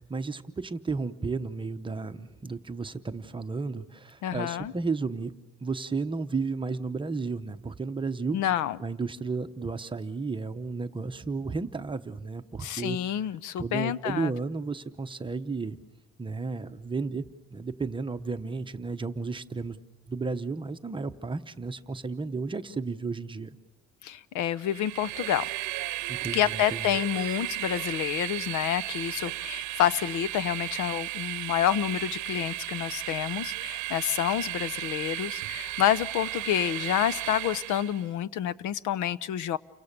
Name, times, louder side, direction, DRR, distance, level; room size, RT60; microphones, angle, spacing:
voice 1, 0.0-5.3 5.6-8.4 8.8-13.0 13.6-15.8 16.2-17.2 17.5-19.8 20.1-23.6 26.1-26.9, right 4 dB, 15° right, 8 dB, 0.8 m, -33 dB
voice 2, 4.2-4.7 8.3-8.8 12.6-14.3 24.0-25.5 26.3-39.6, left 11 dB, 75° left, 18 dB, 0.8 m, -28 dB
Train, 24.6-38.1, right 17 dB, 80° right, 0.8 m, -35 dB
29.5 x 24.5 x 6.7 m, 1.0 s
cardioid pair, 160°, 30 cm